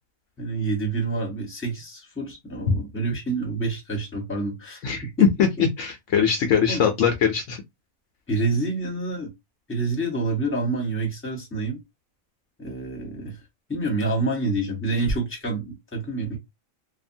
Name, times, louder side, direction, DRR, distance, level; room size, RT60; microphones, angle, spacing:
voice 1, 0.4-4.8 6.7-6.8 8.3-9.3 9.7-11.8 12.6-13.4 13.7-16.4, right 2 dB, 10° left, 1.0 m, -27 dB
voice 2, 4.8-7.6, left 7 dB, 70° left, 0.9 m, -21 dB
2.7 x 2.3 x 2.6 m
omnidirectional pair, 1.5 m